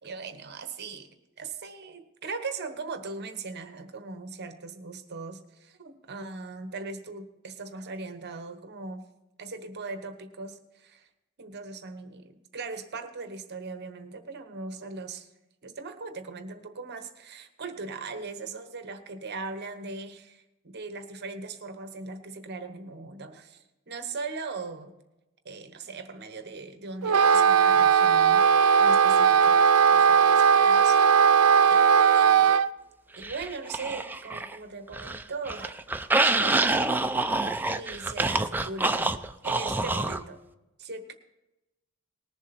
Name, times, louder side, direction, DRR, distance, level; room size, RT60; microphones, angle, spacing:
voice 1, 0.0-9.1 9.4-11.1 11.4-15.3 15.6-24.9 25.4-28.5 28.8-31.4 31.7-32.5 33.2-35.8 36.2-37.4 37.7-40.4 40.8-41.1, right 4 dB, 50° right, 8 dB, 1.0 m, -39 dB
Wind instrument woodwind instrument, 27.0-32.7, right 7 dB, 85° right, 0.6 m, -18 dB
sound 1, 33.2-34.6 34.9-40.2, right 2 dB, 10° right, 0.4 m, -27 dB
19.5 x 7.3 x 4.3 m, 0.98 s
head